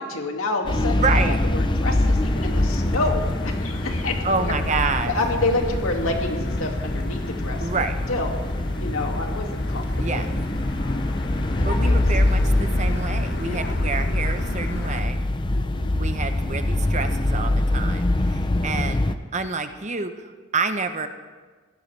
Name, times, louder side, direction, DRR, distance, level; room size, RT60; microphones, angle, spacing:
voice 1, 0.0-4.5 5.0-7.7 8.1-8.4 8.8-10.2 10.8-11.1 11.6-12.1 12.9-13.0 13.4-13.8 15.5-15.9 18.5-18.8, left 2 dB, 85° left, 2 dB, 2.3 m, -29 dB
sound 1, 0.6-19.1, left 1 dB, 25° left, 0.6 m, -24 dB
voice 2, 0.9-1.4 4.2-5.1 7.6-7.9 10.0-10.3 11.6-15.2 15.9-19.0 19.3-21.1, right 4 dB, 35° right, 8 dB, 0.9 m, -28 dB
Motor vehicle (road), 2.0-15.0, left 1 dB, 55° left, 1.4 m, -33 dB
26.0 x 16.0 x 3.4 m, 1.4 s
head